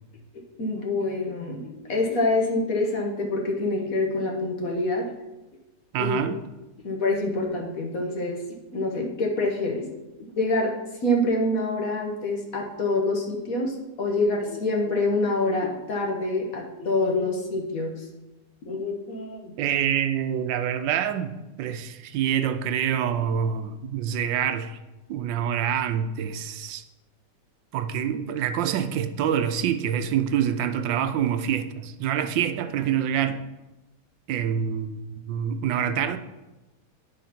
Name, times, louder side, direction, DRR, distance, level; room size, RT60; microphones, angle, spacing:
voice 1, 0.6-5.0 6.0-6.2 6.8-8.4 8.7-9.9 10.3-10.7 11.0-18.1 18.6-19.5, left 2 dB, 55° left, 0 dB, 1.5 m, -26 dB
voice 2, 5.9-6.4 19.6-21.3 21.6-24.8 25.1-26.8 27.7-33.4 34.3-36.2, right 9 dB, 85° right, 9 dB, 1.3 m, -26 dB
9.3 x 3.9 x 5.8 m, 1.1 s
omnidirectional pair, 1.9 m